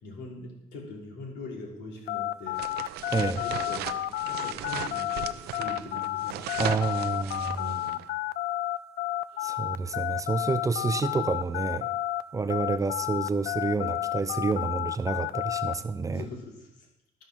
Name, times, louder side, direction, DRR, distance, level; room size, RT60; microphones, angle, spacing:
voice 1, 0.0-2.6 3.1-6.7 7.6-8.0 9.3-9.6 16.1-16.9, left 3 dB, 85° left, -1 dB, 3.2 m, -42 dB
sound 1, 2.1-12.2 12.5-15.7, left 14 dB, 70° left, 0.6 m, -31 dB
sound 2, 2.5-8.0, right 12 dB, 75° right, 0.6 m, -37 dB
voice 2, 3.1-3.4 6.6-7.7 9.4-11.9 12.3-16.2, right 4 dB, 20° right, 12 dB, 0.6 m, -29 dB
13.0 x 5.2 x 6.1 m, 0.91 s
cardioid pair, 110°, 17 cm